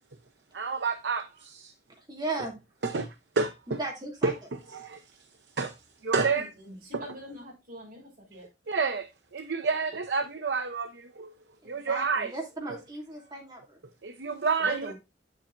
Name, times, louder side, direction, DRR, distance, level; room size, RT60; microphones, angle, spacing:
voice 1, 0.5-1.7 2.8-3.8 4.2-4.3 4.7-5.0 5.6-5.7 6.0-6.5 6.9-7.1 8.7-11.3 11.6-12.3 12.7-12.8 14.0-14.9, right 4 dB, 80° right, 0.8 m, -29 dB
voice 2, 2.0-2.5 3.7-4.3 11.6-13.8, right 2 dB, 25° right, 2.7 m, -36 dB
voice 3, 6.9-8.5 14.6-14.9, right 1 dB, 55° right, 4.9 m, -41 dB
8.7 x 7.4 x 2.5 m
head